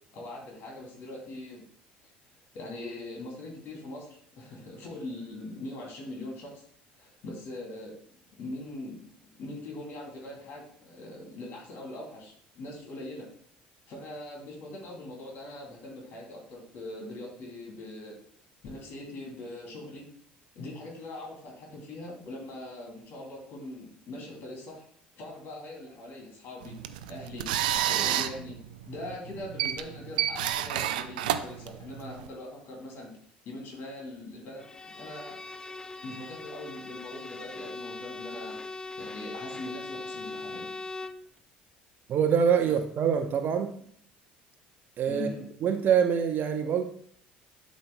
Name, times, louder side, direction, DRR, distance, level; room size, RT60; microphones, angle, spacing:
voice 1, 0.1-1.6 2.5-6.6 7.0-8.0 8.4-9.1 9.4-13.3 13.9-18.2 18.6-20.1 20.5-24.8 25.2-26.7 27.1-27.5 27.9-28.6 28.8-33.1 33.4-35.4 36.0-38.6 39.0-40.7 45.1-45.4, left 1 dB, 50° left, -1 dB, 2.7 m, -41 dB
sound 1, 26.6-32.3, right 11 dB, 65° right, 0.4 m, -30 dB
Bowed string instrument, 34.6-41.3, left 3 dB, 15° left, 0.5 m, -40 dB
voice 2, 42.1-43.7 45.0-45.3 45.6-46.8, right 7 dB, 40° right, 7 dB, 0.8 m, -25 dB
11.5 x 5.3 x 2.2 m, 0.62 s
figure-of-eight pair, 60°, 5 cm